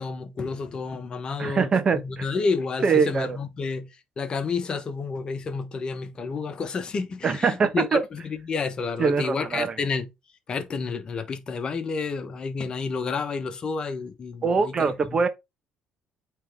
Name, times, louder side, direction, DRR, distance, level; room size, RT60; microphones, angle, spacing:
voice 1, 0.0-3.9 4.2-10.1 10.5-15.2, left 4 dB, 45° left, 1.2 m, -30 dB
voice 2, 1.4-2.3 2.8-3.4 7.2-8.0 9.0-9.8 14.4-15.3, right 5 dB, 40° right, 1.1 m, -23 dB
8.5 x 3.4 x 3.5 m
supercardioid pair, 70°, 2 cm